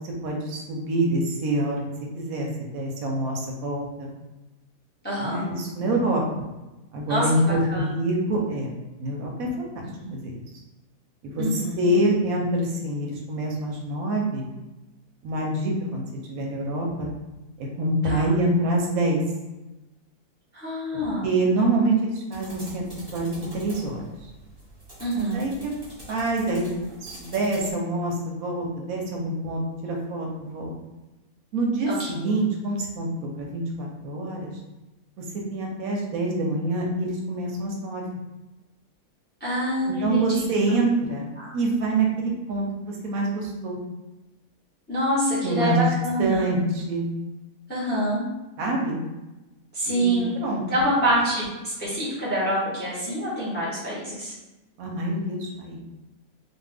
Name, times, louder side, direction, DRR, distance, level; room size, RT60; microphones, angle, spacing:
voice 1, 0.0-1.8 2.1-4.1 5.2-6.4 6.9-8.7 9.0-10.3 11.2-14.5 15.2-16.0 16.3-17.1 17.6-19.2 21.2-22.8 23.1-24.0 25.1-25.7 26.1-26.7 27.0-30.7 31.5-34.5 35.2-38.0 39.8-41.3 41.5-43.8 45.4-45.8 46.2-47.1 48.6-49.0 49.9-50.6 54.8-55.8, right 2 dB, 75° right, -1 dB, 1.0 m, -26 dB
voice 2, 5.0-5.6 7.1-7.9 10.0-10.1 11.4-11.9 18.0-18.3 20.5-21.4 25.0-25.4 31.9-32.3 39.4-40.5 41.4-41.5 44.9-46.6 47.7-48.2 49.7-50.3 50.7-54.3, equal, 10° left, -7 dB, 0.5 m, -26 dB
sound 1, 22.3-27.7, equal, 30° right, 0.9 m, -45 dB
2.5 x 2.3 x 3.3 m, 1.0 s
omnidirectional pair, 1.6 m